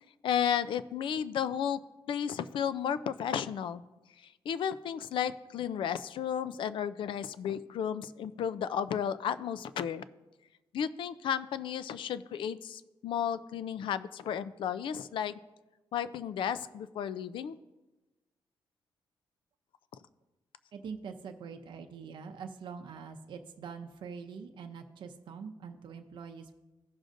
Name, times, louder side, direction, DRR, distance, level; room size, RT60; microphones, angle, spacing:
voice 1, 0.2-1.8 2.1-3.8 4.2-10.0 10.7-15.4 15.9-17.6, left 8 dB, 75° left, 15 dB, 0.4 m, -33 dB
voice 2, 20.7-26.5, right 6 dB, 65° right, 4 dB, 0.6 m, -44 dB
16.0 x 6.3 x 2.6 m, 1.1 s
wide cardioid pair, 180°, 9 cm